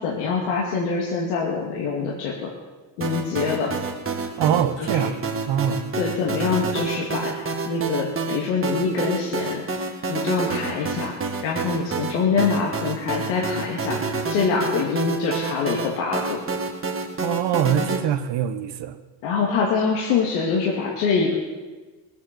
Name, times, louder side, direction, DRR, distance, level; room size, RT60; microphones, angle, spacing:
voice 1, 0.0-2.5 3.0-3.7 4.8-5.1 6.0-11.1 11.4-16.4 19.2-21.3, left 5 dB, 85° left, -3 dB, 2.4 m, -25 dB
sound 1, 3.0-18.0, right 4 dB, 25° right, 1.9 m, -29 dB
voice 2, 4.4-5.2 5.5-5.9 17.2-19.0, right 9 dB, 60° right, 9 dB, 1.3 m, -23 dB
20.0 x 8.8 x 6.8 m, 1.3 s
supercardioid pair, 95°, 48 cm